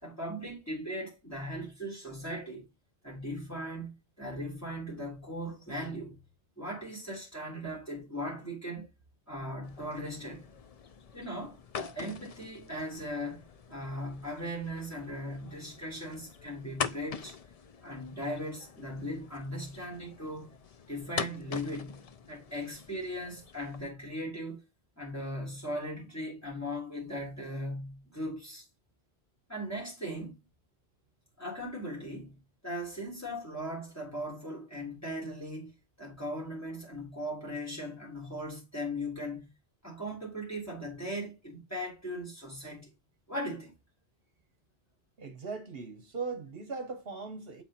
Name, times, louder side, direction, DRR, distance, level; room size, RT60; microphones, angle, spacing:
voice 1, 0.0-2.6 3.0-6.2 6.6-8.9 9.3-10.5 11.1-13.4 13.7-17.4 17.8-20.5 20.9-24.6 25.0-28.6 29.5-30.4 31.4-39.5 39.8-42.9 43.3-43.7, equal, 15° left, 3.3 m, -38 dB
sound 1, 9.6-23.8, left 6 dB, 45° left, 0.5 m, -44 dB
voice 2, 45.2-47.6, right 4 dB, 65° right, 1.1 m, -39 dB
7.5 x 4.4 x 4.2 m
omnidirectional pair, 1.1 m